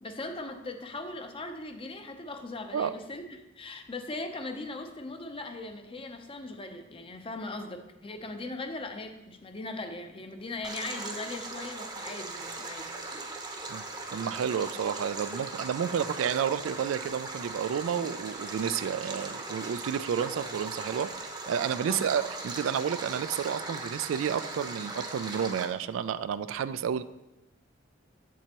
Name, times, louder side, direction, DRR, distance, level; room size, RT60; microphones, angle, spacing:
voice 1, 0.0-12.9 15.5-15.6 21.8-22.1, left 2 dB, 30° left, 6 dB, 0.6 m, -39 dB
Stream, 10.6-25.7, right 3 dB, 20° right, 0.8 m, -39 dB
voice 2, 14.1-21.1 21.5-27.0, right 8 dB, 75° right, 14 dB, 0.3 m, -31 dB
7.8 x 7.4 x 2.9 m, 0.97 s
head